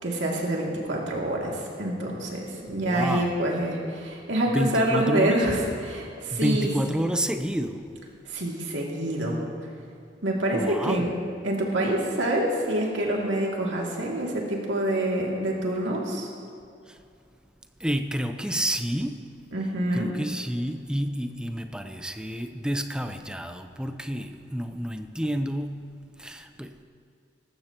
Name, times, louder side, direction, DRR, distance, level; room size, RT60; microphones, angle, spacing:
voice 1, 0.0-6.7 8.3-9.4 10.2-11.2 11.4-16.3 19.5-20.1, right 1 dB, 85° right, -2 dB, 2.5 m, -26 dB
voice 2, 2.7-3.4 4.5-5.5 6.3-7.9 10.5-11.1 16.9-17.0 17.8-19.3 19.9-26.8, equal, 5° right, 7 dB, 0.6 m, -29 dB
18.5 x 14.5 x 3.0 m, 2.4 s
head